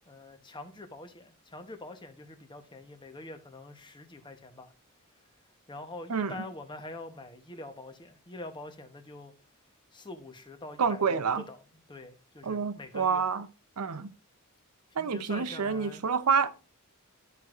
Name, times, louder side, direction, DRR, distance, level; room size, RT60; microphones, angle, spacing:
voice 1, 0.1-4.7 5.7-9.3 9.9-11.6 11.9-13.3 14.9-16.0, left 2 dB, 20° left, 0.9 m, -45 dB
voice 2, 10.8-11.4 12.4-13.5 13.8-14.1 15.0-16.5, right 6 dB, 80° right, 0.6 m, -28 dB
12.5 x 4.6 x 2.5 m
head